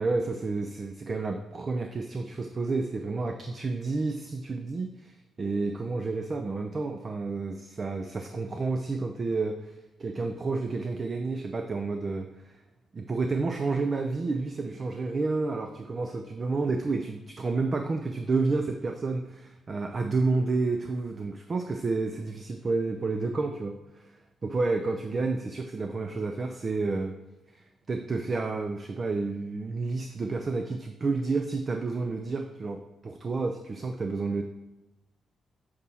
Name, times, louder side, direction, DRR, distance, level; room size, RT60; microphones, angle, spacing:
voice 1, 0.0-12.5 12.9-24.1 24.4-27.1 27.5-34.4, right 3 dB, 35° right, 5 dB, 0.4 m, -30 dB
7.4 x 4.1 x 4.2 m, 1.0 s
cardioid pair, 120°, 0 cm